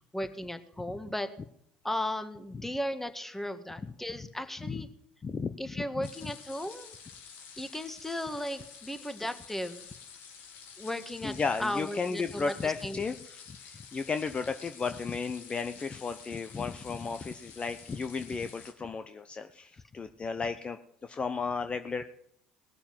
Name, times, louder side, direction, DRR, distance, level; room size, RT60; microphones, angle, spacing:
voice 1, 0.1-1.3 1.8-4.9 5.6-6.9 7.6-9.9 10.8-13.0, left 1 dB, 5° left, 9 dB, 1.7 m, -36 dB
voice 2, 5.2-6.1 11.2-22.0, left 5 dB, 30° left, 9 dB, 0.9 m, -34 dB
sound 1, 6.0-18.7, left 6 dB, 65° left, 3.1 m, -50 dB
19.0 x 7.0 x 7.6 m, 0.70 s
hypercardioid pair, 75°, 4 cm